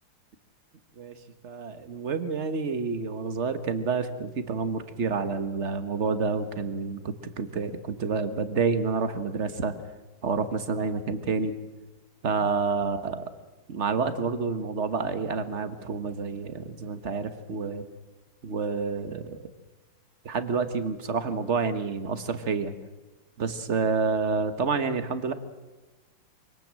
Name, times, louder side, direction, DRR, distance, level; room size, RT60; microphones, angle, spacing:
voice 1, 1.4-9.7 10.2-11.5 12.2-13.2 13.7-17.8 18.4-19.4 20.2-22.7 23.4-25.3, right 5 dB, 40° right, 11 dB, 1.4 m, -28 dB
24.5 x 18.5 x 7.6 m, 1.2 s
omnidirectional pair, 2.1 m